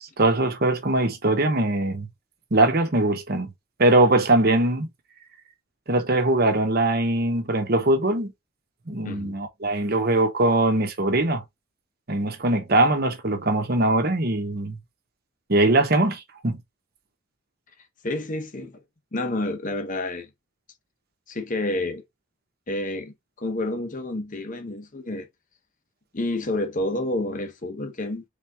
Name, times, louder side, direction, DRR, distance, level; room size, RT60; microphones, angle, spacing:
voice 1, 0.0-2.1 2.5-3.5 3.8-4.9 5.9-8.3 8.9-11.4 12.1-14.8 15.5-16.6, right 2 dB, 45° right, 1.0 m, -21 dB
voice 2, 9.0-9.4 18.0-18.8 19.1-20.3 21.3-22.0 22.7-25.3 26.1-28.2, left 2 dB, 35° left, 0.8 m, -29 dB
3.8 x 3.5 x 2.9 m
head